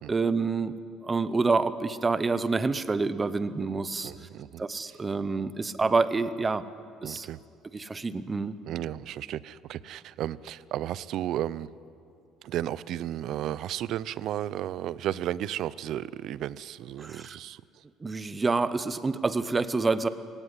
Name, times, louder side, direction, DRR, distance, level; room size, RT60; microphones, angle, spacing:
voice 1, 0.1-0.8 1.0-4.1 4.6-6.6 7.0-7.3 7.7-8.5 17.0-17.4 18.0-20.1, right 4 dB, 15° right, 14 dB, 0.8 m, -27 dB
voice 2, 4.0-4.6 7.0-7.4 8.7-11.7 12.4-17.6, right 12 dB, 55° right, 19 dB, 0.5 m, -33 dB
21.5 x 17.5 x 9.9 m, 2.5 s
cardioid pair, 160°, 0 cm